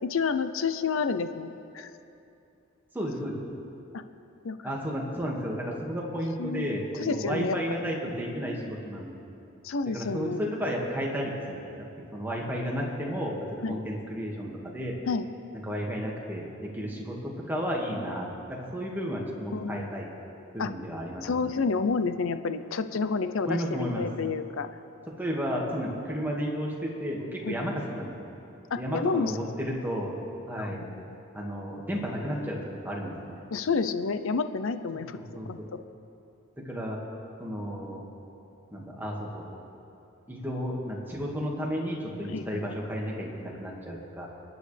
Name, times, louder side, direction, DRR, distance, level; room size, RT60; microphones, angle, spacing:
voice 1, 0.0-1.9 3.9-4.0 4.4-4.7 6.4-6.7 7.0-7.9 9.6-10.5 13.6-13.9 15.1-15.3 19.5-19.9 20.6-20.7 21.2-24.7 27.4-27.6 28.7-29.4 30.6-31.2 33.5-35.2 35.4-35.8 42.3-42.7, left 4 dB, 70° left, 10 dB, 0.6 m, -30 dB
voice 2, 2.9-3.3 4.6-9.2 9.9-15.0 15.7-20.1 20.5-21.4 23.5-24.0 25.1-28.1 28.8-30.2 30.5-30.8 31.3-32.6 32.8-33.4 35.1-35.7 36.7-37.0 37.4-38.0 38.7-39.5 40.3-44.3, equal, 10° right, -3 dB, 1.9 m, -33 dB
28.0 x 9.5 x 3.4 m, 2.8 s
head